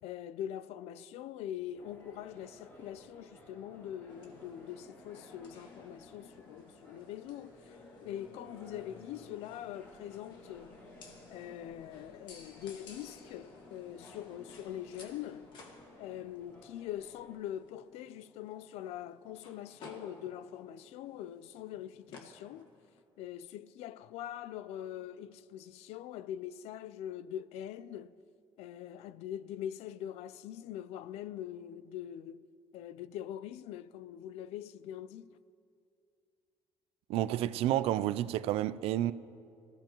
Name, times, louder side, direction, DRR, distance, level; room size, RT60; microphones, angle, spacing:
voice 1, 0.0-10.8 11.3-15.5 16.0-22.7 23.2-28.2 28.6-32.4 32.7-35.4, left 11 dB, 85° left, 0.4 m, -43 dB
sound 1, 1.7-17.4, left 1 dB, 20° left, 3.2 m, -58 dB
sound 2, 4.1-23.0, left 3 dB, 50° left, 1.8 m, -56 dB
voice 2, 37.1-39.1, right 13 dB, 70° right, 0.4 m, -30 dB
24.5 x 15.5 x 3.0 m
cardioid pair, 180°, 10 cm